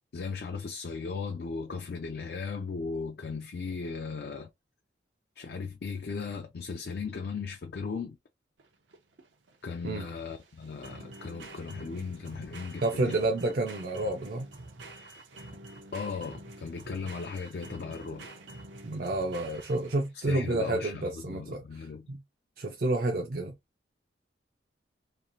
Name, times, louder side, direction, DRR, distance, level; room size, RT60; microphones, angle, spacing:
voice 1, 0.1-4.5 5.4-8.2 9.6-13.2 15.9-18.3 20.1-22.1, left 5 dB, 55° left, 0.4 m, -37 dB
sound 1, 8.6-20.2, right 2 dB, 90° right, 0.8 m, -47 dB
voice 2, 12.8-14.5 18.8-22.2 22.6-23.5, right 2 dB, 50° right, 0.5 m, -30 dB
3.0 x 2.4 x 2.5 m
head